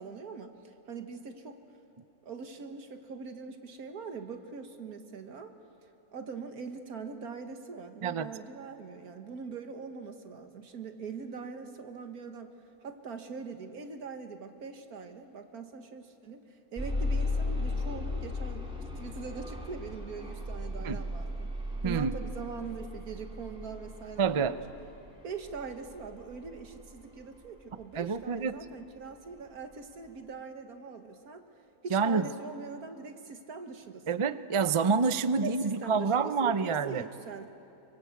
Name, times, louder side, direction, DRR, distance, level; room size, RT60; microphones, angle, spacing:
voice 1, 0.0-1.6 2.2-5.5 6.1-12.5 12.8-18.7 19.0-21.5 21.8-24.6 25.2-31.4 31.8-34.0 35.4-37.5, right 5 dB, 75° right, 7 dB, 1.9 m, -42 dB
sound 1, 16.8-28.7 29.4-29.5 30.0-30.1, left 2 dB, 5° right, 3.2 m, -36 dB
voice 2, 21.8-22.1 24.2-24.5 27.9-28.6 31.9-32.3 34.1-37.0, right 5 dB, 55° right, 12 dB, 0.3 m, -27 dB
25.5 x 24.0 x 8.3 m, 2.8 s
omnidirectional pair, 1.6 m